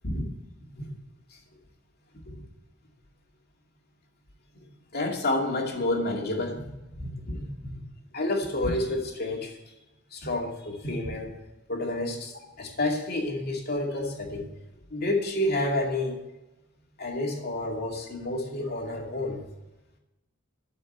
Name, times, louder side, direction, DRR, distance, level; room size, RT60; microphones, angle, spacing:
voice 1, 4.9-7.8 8.1-9.5 10.1-11.4 11.7-12.3 12.6-14.5 14.9-16.1 17.0-19.4, left 1 dB, 50° left, 0 dB, 2.4 m, -29 dB
12.5 x 5.6 x 8.6 m, 1.0 s
head